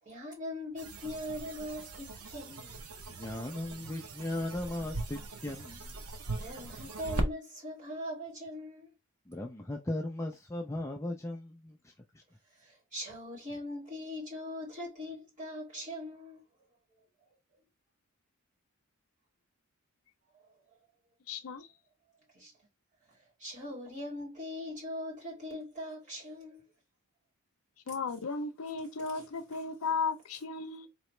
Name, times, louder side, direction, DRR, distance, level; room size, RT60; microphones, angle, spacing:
voice 1, 0.0-2.8 6.3-8.9 12.6-16.4 22.3-22.5 23.4-26.7 29.0-29.3, left 1 dB, 35° right, 2.7 m, -41 dB
sound 1, 0.8-7.3, right 2 dB, 85° right, 0.8 m, -39 dB
voice 2, 3.1-5.9 9.3-11.7, left 1 dB, 15° left, 0.4 m, -37 dB
voice 3, 21.3-21.7 27.9-30.9, left 5 dB, 75° left, 0.6 m, -35 dB
4.0 x 2.9 x 3.2 m
head